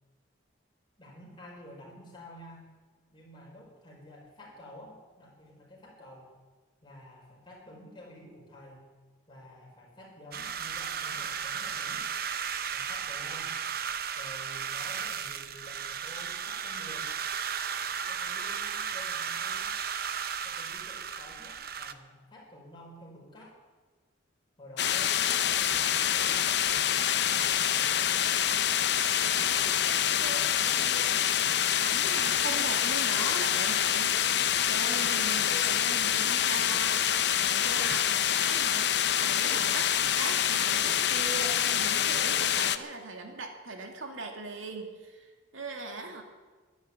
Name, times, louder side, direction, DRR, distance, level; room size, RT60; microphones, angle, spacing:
voice 1, 1.0-2.7 3.1-6.3 6.8-8.9 9.3-12.1 12.7-13.5 14.2-17.1 18.1-19.8 20.4-23.5 24.6-26.7 27.1-28.3, left 1 dB, 25° left, -2 dB, 4.9 m, -50 dB
sound 1, 10.3-21.9, right 7 dB, 50° right, 0.8 m, -35 dB
sound 2, 24.8-42.8, left 10 dB, 55° left, 0.7 m, -26 dB
voice 2, 29.3-29.8 30.2-46.2, right 3 dB, 80° right, 3 dB, 2.3 m, -40 dB
12.0 x 11.0 x 9.9 m, 1.4 s
head